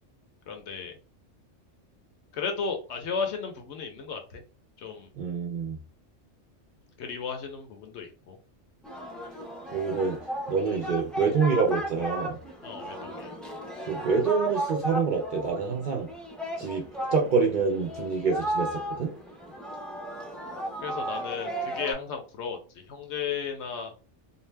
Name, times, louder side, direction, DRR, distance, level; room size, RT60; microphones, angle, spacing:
voice 1, 0.5-0.9 2.3-4.4 4.8-5.1 7.0-8.4 12.6-13.4 20.8-23.9, left 6 dB, 70° left, 4 dB, 0.9 m, -34 dB
voice 2, 5.2-5.8 9.7-10.2 10.5-12.4 13.9-16.1 16.6-16.8 17.1-19.1, right 5 dB, 55° right, 1 dB, 0.5 m, -26 dB
Singing, 8.8-21.9, right 1 dB, ahead, 0.4 m, -35 dB
2.6 x 2.0 x 3.2 m, 0.35 s
omnidirectional pair, 1.2 m